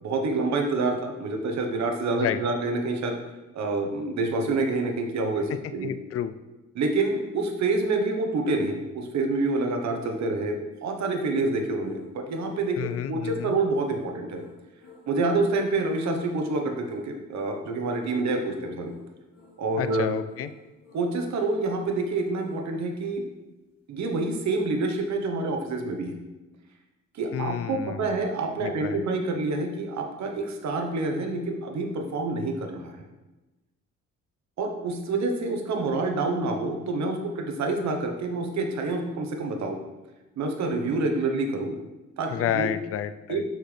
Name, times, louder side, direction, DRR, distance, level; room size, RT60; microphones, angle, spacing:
voice 1, 0.0-3.2 3.5-5.9 6.7-12.8 13.1-14.4 15.1-18.9 19.6-20.1 20.9-23.2 23.9-26.1 27.1-33.1 34.6-39.8 40.4-41.8 42.2-42.7 43.3-43.4, right 3 dB, 65° right, 4 dB, 1.1 m, -27 dB
voice 2, 5.8-6.3 12.8-13.6 19.8-20.5 27.3-28.1 28.6-29.0 42.3-43.4, left 10 dB, 50° left, 12 dB, 0.4 m, -30 dB
sound 1, 10.8-22.7, left 2 dB, 75° left, 2.1 m, -52 dB
5.9 x 5.2 x 3.3 m, 1.1 s
cardioid pair, 90°, 30 cm